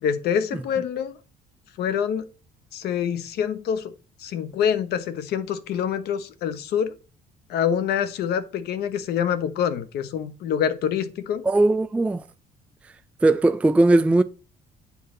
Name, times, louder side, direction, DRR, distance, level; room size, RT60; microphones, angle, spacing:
voice 1, 0.0-1.1 1.8-2.3 2.7-3.9 4.2-6.9 7.5-11.4, left 8 dB, 75° left, 1.0 m, -26 dB
voice 2, 11.4-12.2 13.2-14.2, right 2 dB, 10° right, 0.3 m, -19 dB
8.4 x 5.5 x 3.8 m
cardioid pair, 110°, 17 cm